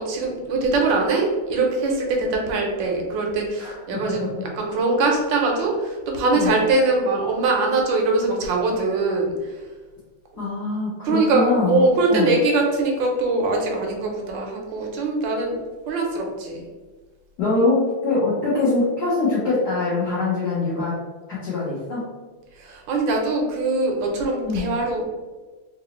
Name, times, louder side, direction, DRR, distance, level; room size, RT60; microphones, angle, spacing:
voice 1, 0.0-9.6 11.0-15.6 15.9-16.7 22.6-25.1, right 3 dB, 70° right, 1 dB, 1.3 m, -22 dB
voice 2, 3.6-4.4 6.3-6.6 10.4-12.3 17.4-21.0 21.4-22.1 24.5-24.7, left 3 dB, 60° left, -10 dB, 1.5 m, -23 dB
3.9 x 2.7 x 3.0 m, 1.3 s
omnidirectional pair, 2.3 m